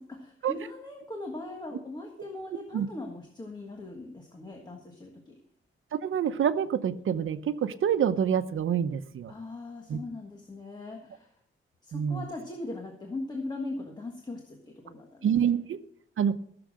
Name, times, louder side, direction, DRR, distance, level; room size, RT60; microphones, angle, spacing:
voice 1, 0.1-5.4 9.3-11.3 11.8-15.3, left 2 dB, 20° left, 2 dB, 1.5 m, -40 dB
voice 2, 5.9-9.3 9.9-10.0 11.9-12.3 15.2-15.8 16.2-16.3, right 8 dB, 75° right, 11 dB, 0.9 m, -27 dB
15.5 x 7.0 x 6.3 m, 0.64 s
wide cardioid pair, 175°, 21 cm